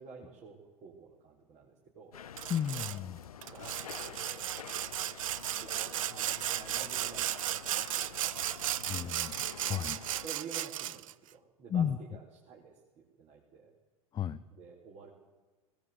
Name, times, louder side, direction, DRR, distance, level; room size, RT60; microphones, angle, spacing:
voice 1, 0.0-2.1 3.4-3.7 4.1-4.5 5.6-8.3 8.6-9.1 10.2-13.7 14.5-15.1, right 5 dB, 35° right, -3 dB, 4.2 m, -51 dB
sound 1, 2.1-10.3, left 8 dB, 75° left, 0.6 m, -48 dB
Sawing, 2.4-3.0 3.4-11.1, right 13 dB, 60° right, 0.8 m, -35 dB
voice 2, 2.5-3.2 8.9-9.3 9.7-10.0 11.7-12.0 14.1-14.4, left 9 dB, 25° left, 10 dB, 0.7 m, -33 dB
19.5 x 18.5 x 8.1 m, 1.2 s
figure-of-eight pair, 85°, 19 cm